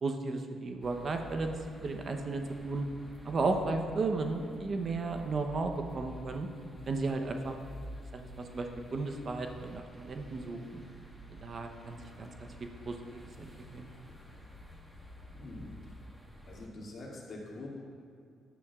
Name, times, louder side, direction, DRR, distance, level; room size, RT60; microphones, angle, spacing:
voice 1, 0.0-2.9 3.2-6.5 6.9-7.6 8.1-10.8 11.3-13.8, right 3 dB, 45° right, 5 dB, 0.8 m, -34 dB
sound 1, 0.8-16.7, equal, 5° right, 1.3 m, -50 dB
voice 2, 15.3-15.9 16.4-17.7, left 2 dB, 55° left, -3 dB, 2.3 m, -45 dB
11.5 x 10.0 x 2.4 m, 2.4 s
cardioid pair, 90°, 0 cm